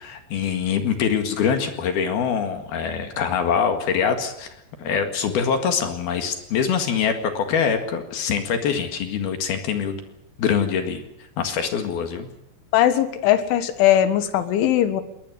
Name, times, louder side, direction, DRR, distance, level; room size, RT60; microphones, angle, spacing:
voice 1, 0.0-10.0 10.4-11.0 11.4-12.3, left 7 dB, 60° left, 7 dB, 3.5 m, -24 dB
voice 2, 12.7-15.0, left 11 dB, 80° left, 12 dB, 4.0 m, -19 dB
21.0 x 20.0 x 8.1 m, 0.83 s
omnidirectional pair, 5.4 m